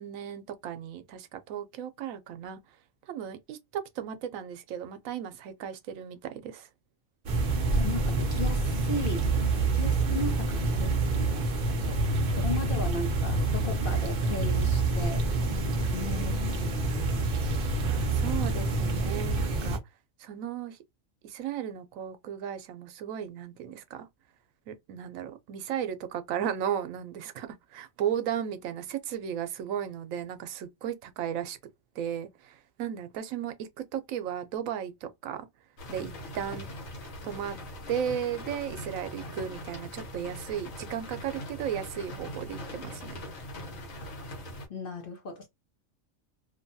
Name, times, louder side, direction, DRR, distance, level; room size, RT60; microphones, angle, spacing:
voice 1, 0.0-2.6 3.1-6.7 17.8-19.8 20.2-20.8 21.2-24.1 24.7-31.6 32.0-35.5 35.9-36.7 37.2-37.6 37.9-43.2, right 9 dB, 85° right, 1.0 m, -35 dB
sound 1, 7.3-19.8, right 3 dB, 50° right, 0.8 m, -27 dB
voice 2, 7.7-9.3 9.6-11.5 11.8-12.0 12.3-15.3 15.9-17.3 44.0-44.1 44.7-45.5, left 2 dB, 55° left, 0.7 m, -37 dB
sound 2, 35.8-44.7, left 1 dB, 80° left, 1.4 m, -41 dB
2.8 x 2.2 x 2.6 m
omnidirectional pair, 1.4 m